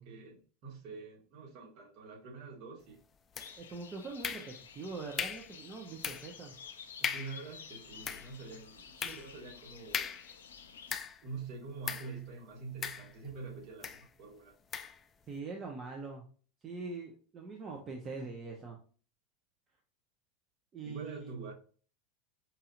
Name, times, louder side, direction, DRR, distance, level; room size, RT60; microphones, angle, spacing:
voice 1, 0.0-3.0 7.0-10.1 11.2-14.5 20.8-21.5, right 4 dB, 55° right, 1.7 m, -46 dB
sound 1, 3.3-3.8 4.2-4.8 5.2-5.5 6.0-6.4 6.7-6.8 7.0-7.4 7.9-11.3 11.8-12.2 12.8-13.4 13.8-14.1 14.7-15.0, left 7 dB, 30° left, 0.4 m, -39 dB
sound 2, 3.4-11.0, left 7 dB, 85° left, 0.5 m, -52 dB
voice 2, 3.6-6.6 15.3-16.3 16.6-18.8 20.7-21.3, right 3 dB, 35° right, 0.8 m, -43 dB
5.5 x 2.7 x 2.5 m
hypercardioid pair, 90°, 0 cm